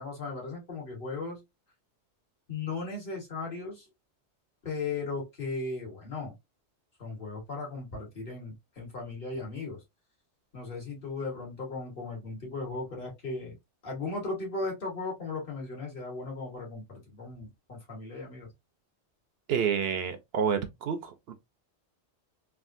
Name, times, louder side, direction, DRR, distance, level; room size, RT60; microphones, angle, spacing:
voice 1, 0.0-1.4 2.5-3.9 4.6-6.4 7.0-9.8 10.5-13.6 13.8-18.5, left 3 dB, 55° left, 1.6 m, -37 dB
voice 2, 19.5-21.3, right 7 dB, 65° right, 0.8 m, -29 dB
3.4 x 2.4 x 2.5 m
omnidirectional pair, 1.2 m